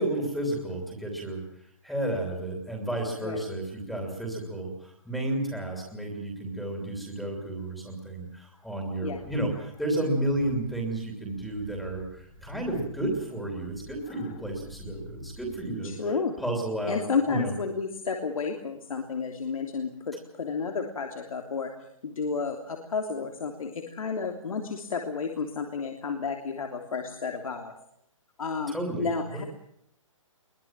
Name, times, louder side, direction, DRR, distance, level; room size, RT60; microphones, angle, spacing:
voice 1, 0.0-16.1 16.4-17.5 28.7-29.4, right 1 dB, ahead, 1 dB, 2.9 m, -32 dB
sound 1, 9.1-15.9, left 1 dB, 20° left, 2.4 m, -48 dB
voice 2, 15.8-16.3 16.9-21.7 22.0-27.7 28.4-29.4, left 5 dB, 85° left, 3 dB, 3.2 m, -31 dB
23.0 x 20.5 x 7.5 m, 0.73 s
hypercardioid pair, 175°, 17 cm